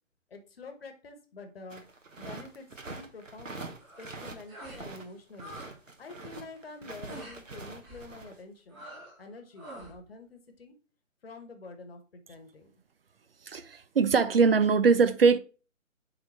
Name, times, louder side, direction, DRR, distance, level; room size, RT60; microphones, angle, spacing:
voice 1, 0.3-1.8 2.2-3.6 4.0-5.6 6.0-8.8 9.2-10.7 11.2-12.7, left 3 dB, 45° left, 1.3 m, -47 dB
sound 1, 1.7-5.0 5.3-8.3, right 3 dB, 70° right, 1.4 m, -44 dB
sound 2, 3.8-4.2 4.5-4.9 5.1-5.7 6.0-6.3 7.1-7.4 7.8-8.1 8.7-9.2 9.5-10.0, right 1 dB, 20° right, 1.9 m, -46 dB
voice 2, 13.5-15.4, right 5 dB, 45° right, 0.6 m, -22 dB
7.6 x 3.8 x 4.2 m
figure-of-eight pair, 140°, 40 cm